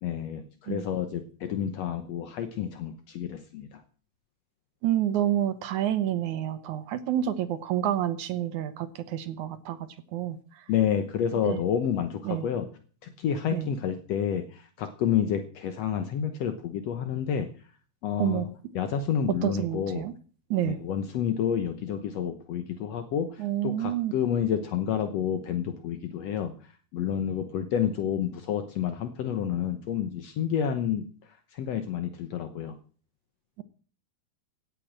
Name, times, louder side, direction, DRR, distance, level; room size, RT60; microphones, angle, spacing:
voice 1, 0.0-3.8 10.7-12.7 13.0-17.5 18.0-20.1 20.6-32.8, left 8 dB, 75° left, 8 dB, 1.5 m, -29 dB
voice 2, 4.8-10.4 11.4-11.6 12.3-12.5 13.5-13.7 18.2-18.5 19.4-20.1 20.5-20.8 23.4-24.1, right 11 dB, 65° right, 10 dB, 2.1 m, -28 dB
17.0 x 8.4 x 7.5 m, 0.42 s
omnidirectional pair, 4.3 m